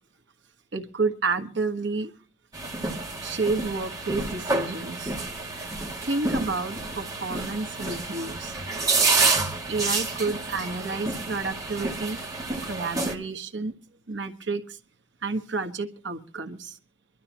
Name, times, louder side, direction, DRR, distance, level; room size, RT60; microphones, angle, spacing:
voice 1, 0.7-2.1 3.2-5.2 6.0-8.6 9.1-9.3 9.7-12.2 12.7-13.7 14.1-14.8 15.2-16.8, right 3 dB, 70° right, 5 dB, 1.4 m, -30 dB
sound 1, 2.5-13.1, right 3 dB, 20° right, 2.2 m, -29 dB
25.0 x 12.0 x 3.0 m, 0.39 s
head